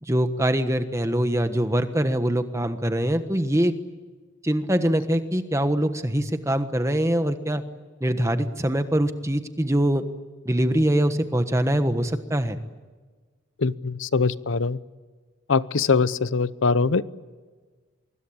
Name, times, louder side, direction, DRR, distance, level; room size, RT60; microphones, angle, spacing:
voice 1, 0.0-3.7 4.4-7.6 8.0-10.0 10.4-12.6, right 1 dB, 15° right, 9 dB, 1.3 m, -23 dB
voice 2, 13.6-14.8 15.5-17.0, left 4 dB, 85° left, 16 dB, 0.8 m, -22 dB
25.0 x 23.0 x 8.8 m, 1.4 s
head